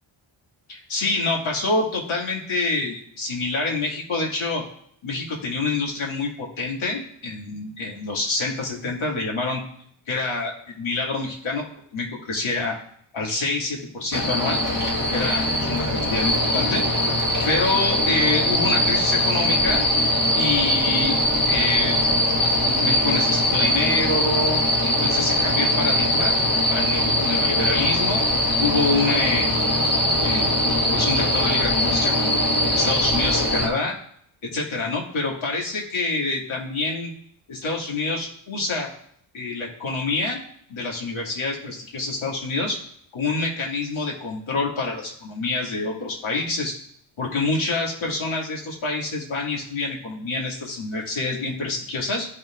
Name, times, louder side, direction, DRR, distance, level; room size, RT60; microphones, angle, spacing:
voice 1, 0.7-4.6 5.0-9.6 10.1-11.6 11.9-12.8 13.1-14.6 15.1-16.8 17.4-19.8 20.3-21.1 21.4-22.0 22.4-26.3 26.7-28.2 28.6-29.9 30.2-32.4 32.7-33.9 34.5-37.1 37.5-38.9 39.3-40.4 40.7-42.8 43.1-46.7 47.2-52.3, left 3 dB, 75° left, -2 dB, 2.5 m, -27 dB
sound 1, 14.1-33.7, left 1 dB, 40° left, 1.7 m, -21 dB
14.5 x 5.9 x 2.5 m, 0.66 s
cardioid pair, 85°, 48 cm